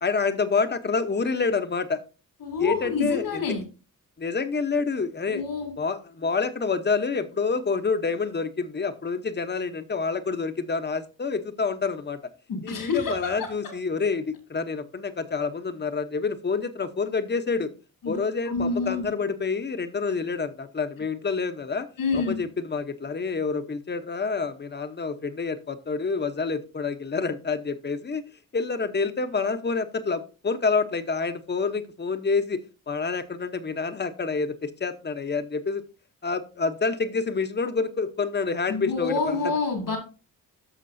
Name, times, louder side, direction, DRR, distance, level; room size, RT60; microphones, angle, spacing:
voice 1, 0.0-2.0 2.6-3.4 4.2-5.4 5.8-12.2 12.6-17.7 18.1-21.9 22.1-28.2 28.5-32.6 32.9-35.8 36.2-39.5, left 4 dB, 30° left, 0.9 m, -28 dB
voice 2, 2.4-3.7 5.3-5.7 12.5-13.3 13.6-13.7 18.0-18.2 18.5-19.1 22.0-22.4 38.7-40.0, left 4 dB, 80° left, 2.9 m, -27 dB
13.5 x 5.9 x 2.7 m
cardioid pair, 90°, 34 cm